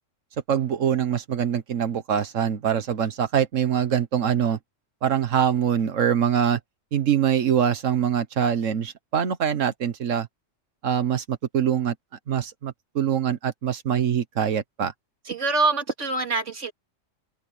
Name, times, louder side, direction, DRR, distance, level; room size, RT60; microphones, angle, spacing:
voice 1, 0.5-4.6 5.0-6.6 6.9-10.3 10.8-11.9 12.3-14.9, right 8 dB, 85° right, 1.5 m, -24 dB
voice 2, 15.3-16.7, right 3 dB, 70° right, 2.7 m, -24 dB
omnidirectional pair, 1.3 m